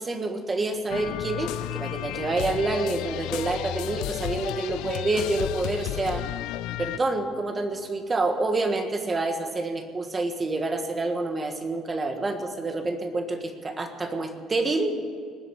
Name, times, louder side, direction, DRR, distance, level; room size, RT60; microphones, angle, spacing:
voice 1, 0.0-6.2 6.8-14.9, right 2 dB, 20° right, 6 dB, 1.5 m, -28 dB
sound 1, 0.9-7.0, left 14 dB, 80° left, 0.4 m, -32 dB
19.5 x 8.1 x 9.0 m, 2.1 s
cardioid pair, 155°, 0 cm